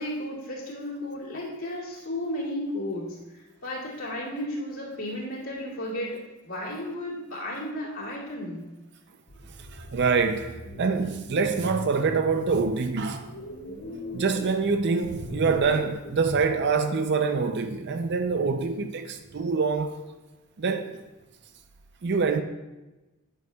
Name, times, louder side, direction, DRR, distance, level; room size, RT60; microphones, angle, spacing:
voice 1, 0.0-3.2 3.6-8.6, left 1 dB, 65° left, 2.4 m, -33 dB
sound 1, 9.3-17.8 18.0-19.5, equal, 80° left, 2.0 m, -41 dB
voice 2, 9.8-13.3 14.1-20.0 20.6-21.0 22.0-22.4, right 4 dB, 50° right, 0.5 m, -25 dB
10.5 x 9.4 x 2.3 m
head